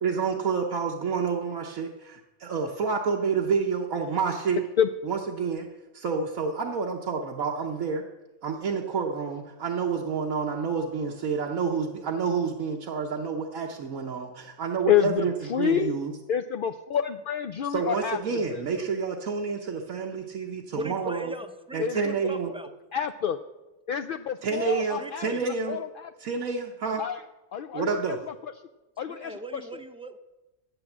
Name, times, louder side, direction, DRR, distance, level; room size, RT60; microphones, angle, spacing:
voice 1, 0.0-4.6 5.0-5.7 5.9-8.0 8.4-16.1 17.7-21.3 21.7-22.5 24.4-25.8 26.2-27.0 27.7-28.2, right 5 dB, 90° right, -1 dB, 1.4 m, -29 dB
voice 2, 14.9-15.9 16.3-18.9 21.8-22.1 22.9-23.4 23.9-26.1 27.0-27.2 27.5-28.2 29.0-29.4, left 9 dB, 65° left, 7 dB, 0.5 m, -28 dB
voice 3, 20.7-22.7 24.6-25.4 29.1-30.2, right 1 dB, 10° right, 7 dB, 0.3 m, -39 dB
11.5 x 8.8 x 7.3 m, 1.0 s
omnidirectional pair, 1.4 m